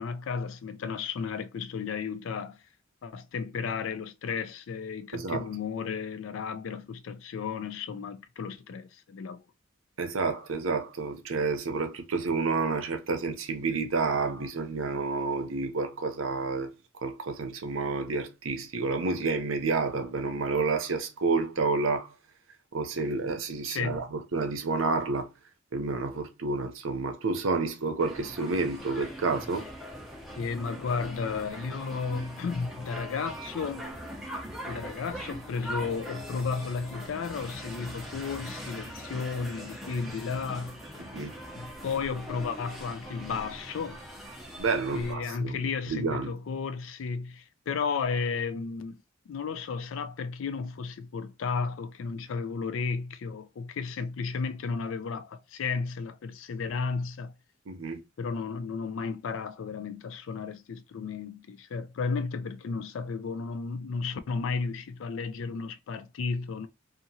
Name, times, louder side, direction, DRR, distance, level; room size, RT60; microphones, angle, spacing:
voice 1, 0.0-2.6 3.0-9.4 23.6-24.1 30.4-33.9 34.7-40.8 41.5-44.0 44.9-57.3 58.2-66.7, left 5 dB, 65° left, 0.4 m, -33 dB
voice 2, 5.1-5.4 10.0-16.7 17.0-22.1 22.7-25.3 25.7-29.6 41.1-41.3 44.6-45.6 45.9-46.3 57.7-58.0, right 4 dB, 75° right, 0.6 m, -29 dB
sound 1, 28.0-45.1, equal, ahead, 0.6 m, -41 dB
2.8 x 2.5 x 2.6 m
head